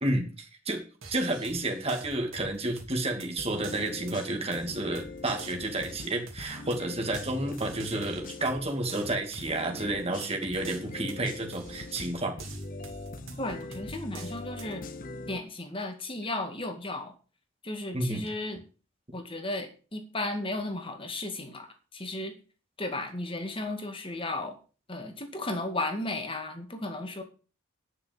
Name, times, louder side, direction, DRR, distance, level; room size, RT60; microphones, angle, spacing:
voice 1, 0.0-0.8 1.1-12.4 17.9-18.2, right 2 dB, 30° right, 3 dB, 2.6 m, -31 dB
sound 1, 1.0-14.7, right 3 dB, 75° right, 2.8 m, -48 dB
sound 2, 3.4-8.7 9.4-15.4, left 2 dB, 45° left, 1.0 m, -42 dB
voice 2, 13.4-14.8 15.3-17.1 17.6-18.6 19.1-21.7 21.9-22.3 22.8-24.6 24.9-27.2, left 2 dB, 25° left, 5 dB, 2.1 m, -34 dB
10.5 x 6.3 x 7.0 m, 0.37 s
head